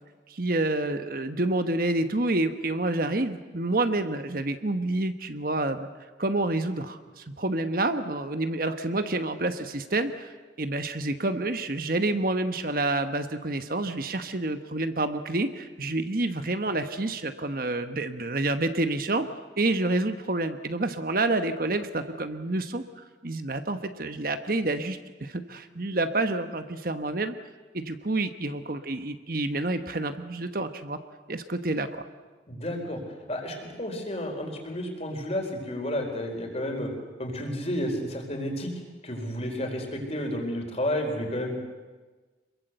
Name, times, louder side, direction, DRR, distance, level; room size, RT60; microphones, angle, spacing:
voice 1, 0.3-5.9 6.2-10.3 10.6-19.3 19.6-27.4 27.7-31.0 31.3-32.0, right 2 dB, 50° right, 9 dB, 1.2 m, -28 dB
voice 2, 32.5-33.0 33.3-36.9 37.2-38.7 39.0-41.7, left 1 dB, 35° left, 3 dB, 4.7 m, -31 dB
27.0 x 22.5 x 8.1 m, 1.3 s
head